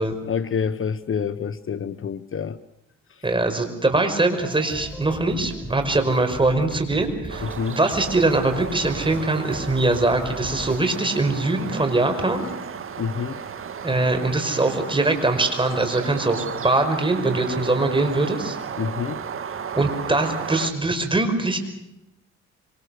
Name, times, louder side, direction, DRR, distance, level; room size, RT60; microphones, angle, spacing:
voice 1, 0.2-2.6 3.1-3.3 7.4-7.8 13.0-13.4 18.8-19.2, left 6 dB, 45° left, 13 dB, 1.0 m, -27 dB
voice 2, 3.2-12.4 13.8-18.6 19.8-21.6, right 2 dB, 15° right, 7 dB, 5.3 m, -22 dB
sound 1, 4.4-11.0, right 1 dB, 5° left, 5.6 m, -38 dB
sound 2, 7.3-20.7, right 7 dB, 45° right, 1.9 m, -34 dB
26.0 x 25.5 x 6.6 m, 0.86 s
cardioid pair, 90°, 30 cm